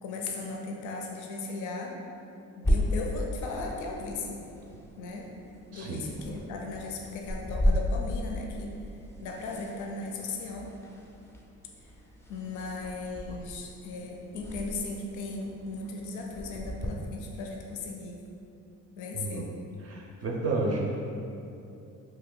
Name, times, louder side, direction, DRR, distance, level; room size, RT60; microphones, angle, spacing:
voice 1, 0.0-2.0 2.4-4.4 5.0-5.3 5.7-8.7 9.2-10.7 12.3-18.2 19.0-19.5, left 3 dB, 75° left, 0 dB, 0.5 m, -37 dB
sound 1, 2.6-16.9, equal, 10° left, 0.3 m, -34 dB
voice 2, 5.7-6.1 19.1-19.4 19.9-21.0, right 3 dB, 55° right, -1 dB, 0.4 m, -31 dB
2.8 x 2.2 x 3.7 m, 2.6 s
cardioid pair, 90°, 30 cm